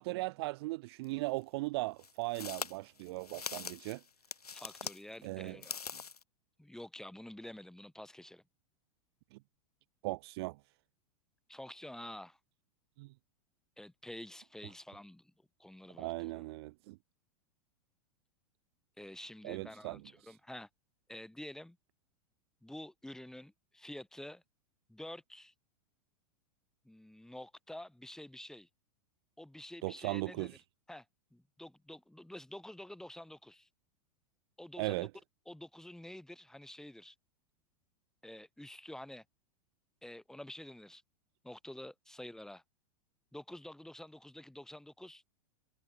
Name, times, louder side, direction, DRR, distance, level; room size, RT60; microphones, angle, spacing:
voice 1, 0.0-4.0 5.2-5.6 9.3-9.4 10.0-10.6 13.0-13.1 16.0-17.0 19.4-20.3 29.8-30.5 34.8-35.1, right 22 dB, 45° right, 0.4 m, -38 dB
sound 1, 1.0-1.1 2.0-5.0 5.5-6.2, left 6 dB, 85° left, 0.5 m, -42 dB
voice 2, 4.5-5.8 6.6-8.4 11.5-12.4 13.8-15.3 15.6-16.4 19.0-20.7 21.1-21.8 22.6-24.4 24.9-25.5 26.8-28.7 29.4-30.6 30.9-31.1 31.3-33.7 34.6-35.1 35.5-37.1 38.2-39.2 40.0-41.0 41.4-42.6 43.3-45.2, left 1 dB, 5° left, 2.4 m, -49 dB
figure-of-eight pair, 90°, 19 cm